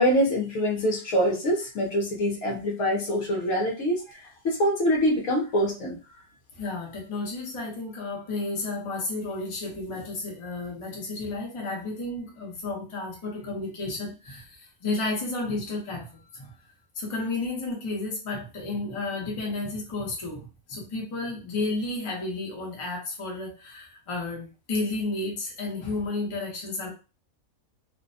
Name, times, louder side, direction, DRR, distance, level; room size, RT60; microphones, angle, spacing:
voice 1, 0.0-4.2 4.4-6.0, equal, 65° left, 0 dB, 1.0 m, -24 dB
voice 2, 6.5-16.5 17.0-26.9, left 2 dB, 30° left, -2 dB, 0.6 m, -32 dB
2.6 x 2.2 x 2.5 m, 0.31 s
omnidirectional pair, 1.6 m